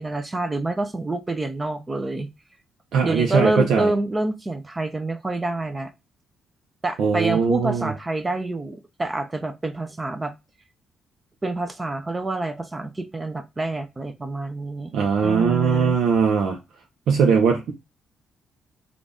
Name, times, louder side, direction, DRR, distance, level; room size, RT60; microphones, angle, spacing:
voice 1, 0.0-2.3 3.0-5.9 6.8-10.3 11.4-14.9 15.2-16.0, right 2 dB, 20° right, 0.5 m, -27 dB
voice 2, 2.9-3.9 7.0-7.9 14.9-16.6 17.1-17.7, right 6 dB, 75° right, 0.7 m, -20 dB
3.8 x 2.4 x 3.4 m
cardioid pair, 90°, 0 cm